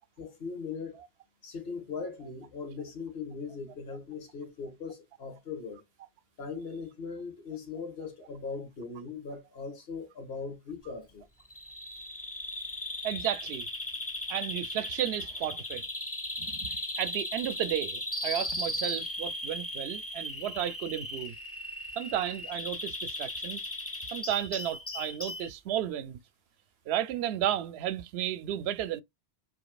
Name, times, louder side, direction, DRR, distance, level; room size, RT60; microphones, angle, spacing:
voice 1, 0.2-1.0 1.4-5.8 6.4-11.3, left 5 dB, 65° left, 1.7 m, -39 dB
Bird vocalization bird call bird song, 11.5-25.5, left 1 dB, 15° left, 0.7 m, -37 dB
voice 2, 13.0-13.7 14.3-15.9 16.4-21.3 22.0-23.6 24.1-26.2 26.9-29.0, right 11 dB, 75° right, 0.8 m, -33 dB
5.1 x 3.6 x 2.3 m
omnidirectional pair, 1.1 m